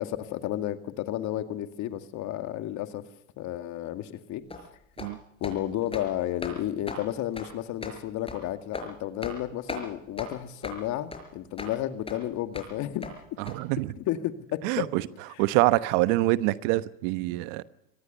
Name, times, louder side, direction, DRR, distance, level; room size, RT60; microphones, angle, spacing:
voice 1, 0.0-3.0 3.4-4.4 5.4-13.2 14.0-14.9, left 13 dB, 45° left, 2.2 m, -32 dB
sound 1, 4.5-4.6 5.0-5.1 5.4-5.6 5.9-6.1 6.4-6.6 6.9-7.0 7.4-7.5 7.8-8.0 8.3-8.4 8.7-8.9 9.2-9.4 9.7-9.8 10.2-10.3 10.6-10.8 11.1-11.2 11.6-11.7 12.1-12.2 12.5-12.7 13.0-13.1 13.5-13.6, left 2 dB, 15° left, 5.1 m, -37 dB
voice 2, 13.5-13.9 14.6-15.0 15.4-17.6, right 19 dB, 55° right, 1.2 m, -25 dB
25.0 x 19.0 x 6.9 m
hypercardioid pair, 90°, 39 cm